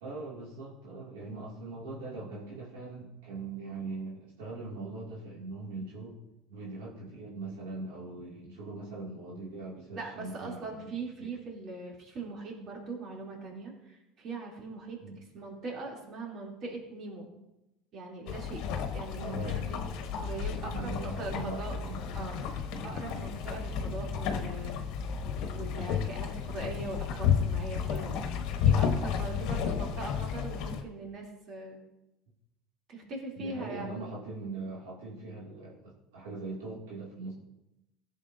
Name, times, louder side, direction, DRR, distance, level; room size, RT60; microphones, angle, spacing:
voice 1, 0.0-6.2 6.5-10.9 11.2-11.3 15.0-15.2 19.2-19.7 20.6-22.3 23.1-23.4 29.5-29.8 33.4-37.3, right 3 dB, 75° right, -5 dB, 2.4 m, -41 dB
voice 2, 9.9-15.0 15.3-17.3 17.9-18.6 18.9-19.8 20.2-21.8 22.1-22.4 22.8-24.9 25.5-28.2 28.5-31.8 32.9-34.1, right 3 dB, 50° right, -1 dB, 3.1 m, -41 dB
sound 1, 18.3-30.8, left 7 dB, 60° left, 1.1 m, -32 dB
15.5 x 7.3 x 2.7 m, 0.92 s
hypercardioid pair, 80°, 0 cm